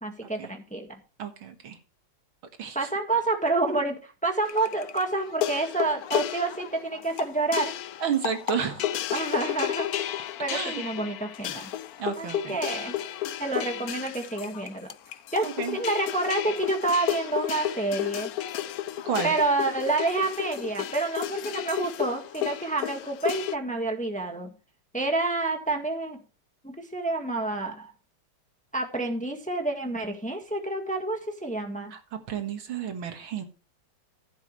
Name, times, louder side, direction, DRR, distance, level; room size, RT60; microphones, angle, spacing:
voice 1, 0.0-1.0 2.7-7.7 9.1-10.1 10.4-11.7 12.2-13.0 13.4-14.9 15.3-15.5 15.7-18.3 19.2-24.5 24.9-26.2 26.6-27.9 28.7-31.9, right 3 dB, 5° left, 1.5 m, -28 dB
voice 2, 1.2-1.8 2.6-2.9 8.0-9.0 10.5-10.8 12.0-12.6 15.4-15.8 19.1-19.3 31.9-33.4, right 7 dB, 80° right, 2.4 m, -31 dB
sound 1, 4.4-23.6, left 12 dB, 70° left, 0.8 m, -32 dB
15.0 x 8.2 x 3.2 m
omnidirectional pair, 2.2 m